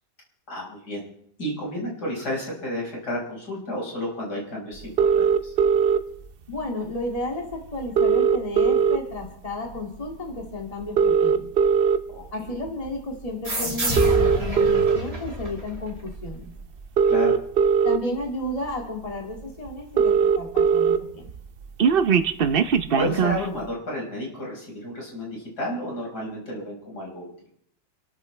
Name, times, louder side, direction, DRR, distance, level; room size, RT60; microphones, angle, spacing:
voice 1, 0.5-1.0 1.4-5.5 12.1-12.5 17.1-17.4 22.9-27.3, left 1 dB, 65° left, -3 dB, 5.5 m, -31 dB
sound 1, 5.0-6.0 7.2-7.3 7.5-7.6 7.8-9.3 9.7-10.0 10.8-12.0 12.7-12.9 13.8-15.0 16.2-16.3 16.8-18.0 18.7-18.8 19.0-19.1 19.4-19.5 19.7-21.0 21.3-23.5, right 6 dB, 60° right, 0.6 m, -19 dB
voice 2, 6.5-11.5 12.3-16.5 17.8-21.3, left 1 dB, 20° left, 0 dB, 2.2 m, -33 dB
sound 2, 13.4-16.7, equal, 20° right, 2.3 m, -29 dB
29.0 x 13.0 x 3.2 m, 0.67 s
omnidirectional pair, 1.9 m